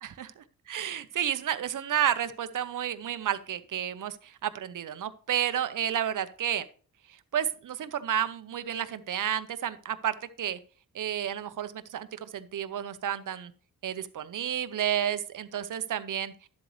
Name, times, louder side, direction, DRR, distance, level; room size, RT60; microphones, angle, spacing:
voice 1, 0.0-6.6 7.3-10.6 10.9-13.5 13.8-16.5, right 10 dB, 60° right, 12 dB, 0.8 m, -31 dB
11.5 x 7.9 x 3.2 m, 0.41 s
cardioid pair, 95°, 35 cm